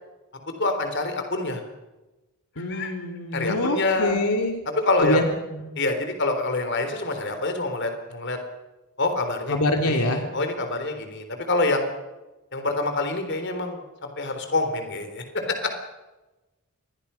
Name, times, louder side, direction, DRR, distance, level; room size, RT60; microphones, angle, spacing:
voice 1, 0.6-1.6 2.7-2.9 3.3-4.2 4.8-5.2 5.8-8.4 9.0-9.5 9.8-11.9 12.5-15.7, left 2 dB, 55° left, 6 dB, 3.8 m, -26 dB
voice 2, 2.6-4.6 5.0-5.2 5.5-5.7 9.5-10.2, left 1 dB, 90° left, 4 dB, 3.0 m, -25 dB
27.0 x 22.0 x 5.8 m, 1.1 s
head